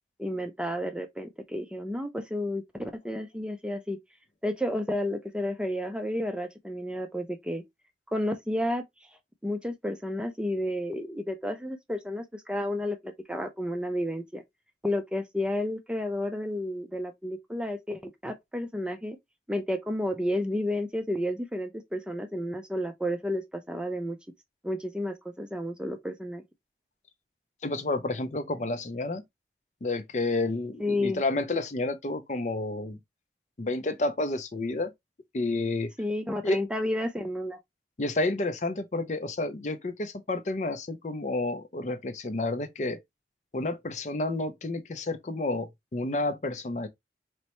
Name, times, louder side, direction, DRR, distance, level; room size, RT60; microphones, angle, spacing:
voice 1, 0.2-4.0 4.4-7.6 8.1-8.8 9.4-14.4 14.8-19.2 19.5-24.2 24.6-26.4 30.8-31.2 36.0-37.6, left 1 dB, 5° right, 0.5 m, -31 dB
voice 2, 27.6-29.2 29.8-33.0 33.6-34.9 35.3-35.9 36.4-36.6 38.0-43.0 43.5-46.9, left 2 dB, 40° left, 0.5 m, -30 dB
4.3 x 3.1 x 2.9 m
head